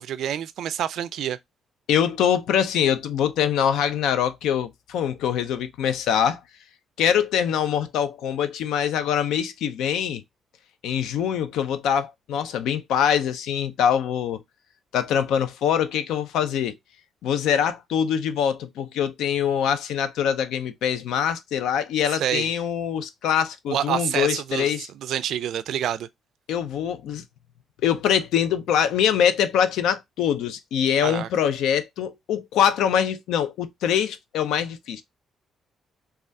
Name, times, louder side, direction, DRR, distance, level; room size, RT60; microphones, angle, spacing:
voice 1, 0.0-1.4 22.1-22.5 23.7-26.1 31.0-31.3, right 10 dB, 75° right, 0.3 m, -27 dB
voice 2, 1.9-6.4 7.0-10.2 10.8-14.4 14.9-16.8 17.2-24.9 26.5-27.2 27.8-35.0, left 8 dB, 85° left, 0.4 m, -24 dB
3.3 x 2.3 x 2.5 m
cardioid pair, 90°, 0 cm